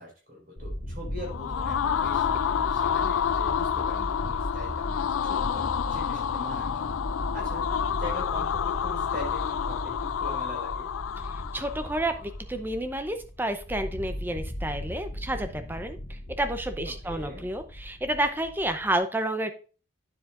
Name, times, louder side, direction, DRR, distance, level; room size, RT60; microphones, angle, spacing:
voice 1, 0.0-6.9 7.3-7.6 7.9-10.9 17.0-17.4, left 1 dB, 45° right, -2 dB, 4.5 m, -41 dB
sound 1, 0.6-19.0, equal, 70° left, 1.6 m, -37 dB
sound 2, 1.2-12.1, left 8 dB, 85° left, 0.3 m, -29 dB
voice 2, 11.5-19.5, right 1 dB, 10° right, 8 dB, 0.6 m, -30 dB
9.6 x 7.4 x 2.5 m, 0.37 s
head